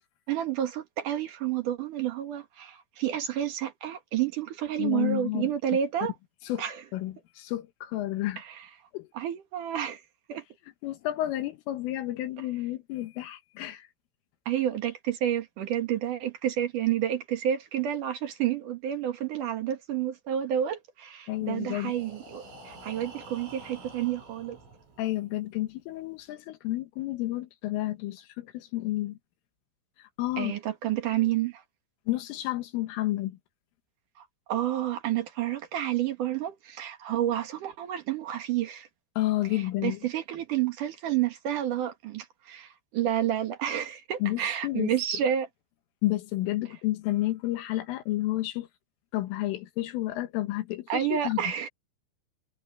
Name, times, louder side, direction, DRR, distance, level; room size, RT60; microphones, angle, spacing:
voice 1, 0.3-6.1 6.6-6.8 8.4-8.7 9.1-10.0 10.3-10.4 14.5-24.6 30.4-31.6 34.2-38.9 39.5-45.5 50.9-51.7, right 11 dB, 60° right, 2.3 m, -30 dB
voice 2, 4.8-5.5 6.5-6.7 6.9-8.4 8.9-9.1 10.8-13.9 21.3-21.9 25.0-29.2 30.0-30.5 32.1-33.4 39.2-40.0 44.2-44.9 46.0-48.7 49.1-51.5, left 16 dB, 80° left, 4.1 m, -31 dB
Breathing, 21.4-25.3, right 2 dB, 80° right, 8.0 m, -48 dB
omnidirectional pair, 5.8 m